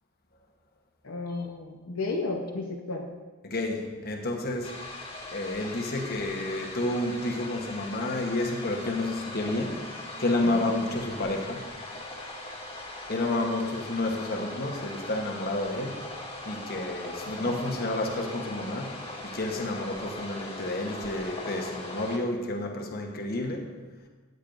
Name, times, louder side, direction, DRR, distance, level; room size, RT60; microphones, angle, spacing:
voice 1, 1.0-3.0 10.5-10.7 17.4-17.5, left 3 dB, 70° left, 0 dB, 0.9 m, -33 dB
voice 2, 3.4-4.7 5.3-9.8 10.2-11.7 13.1-16.0 16.4-19.0 19.2-23.7, left 2 dB, 45° left, 1 dB, 1.1 m, -30 dB
sound 1, 4.6-22.2, left 2 dB, 30° left, 1.4 m, -40 dB
13.5 x 9.2 x 2.6 m, 1.3 s
head